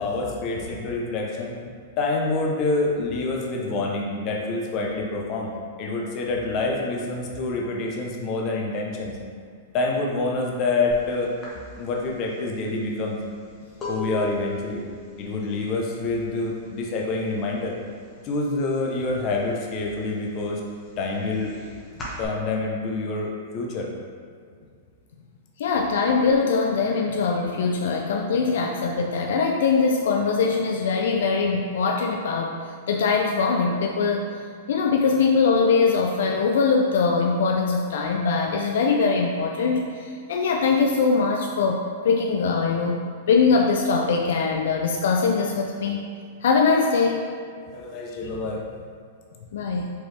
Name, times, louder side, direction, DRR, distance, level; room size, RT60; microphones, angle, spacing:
voice 1, 0.0-1.6 2.0-5.5 5.8-9.2 9.7-11.4 11.8-13.2 13.9-14.8 15.2-17.8 18.2-20.6 21.0-21.6 22.2-23.9 47.7-48.6, left 3 dB, 40° left, 0 dB, 0.7 m, -27 dB
sound 1, 10.9-11.1 11.4-17.1 17.4-17.9 18.2-19.3 19.7-22.3, left 2 dB, 20° left, 1.1 m, -37 dB
voice 2, 25.6-32.5 32.9-34.3 34.7-43.0 43.3-46.1 46.4-47.2 49.5-49.9, left 4 dB, 75° left, 2 dB, 0.3 m, -22 dB
4.5 x 3.1 x 3.3 m, 2.2 s
hypercardioid pair, 135°, 0 cm